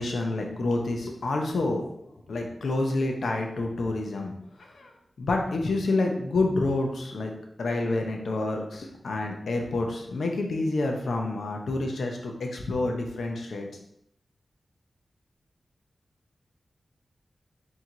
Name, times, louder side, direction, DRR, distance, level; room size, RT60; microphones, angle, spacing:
voice 1, 0.0-1.8 2.3-4.3 4.6-4.9 5.2-7.3 7.6-13.7, left 2 dB, 85° left, 2 dB, 0.7 m, -28 dB
4.5 x 2.8 x 3.8 m, 0.74 s
cardioid pair, 55°, 0 cm